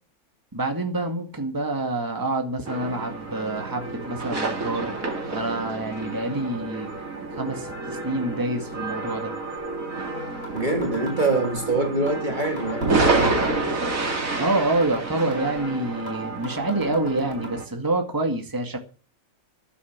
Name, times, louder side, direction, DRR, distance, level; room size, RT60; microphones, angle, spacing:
voice 1, 0.5-5.0 5.3-6.9 7.3-9.3 14.3-18.8, right 2 dB, 15° right, 2.0 m, -27 dB
sound 1, 2.6-17.6, right 3 dB, 65° right, 2.9 m, -29 dB
sound 2, 10.1-10.2 10.4-11.6 12.1-12.2 12.4-13.6 14.1-14.2 14.4-15.6 16.1-16.2 16.4-17.5, left 2 dB, 75° left, 5.0 m, -40 dB
voice 2, 10.5-13.4, right 2 dB, 30° right, 2.1 m, -25 dB
12.5 x 9.9 x 7.3 m
omnidirectional pair, 1.6 m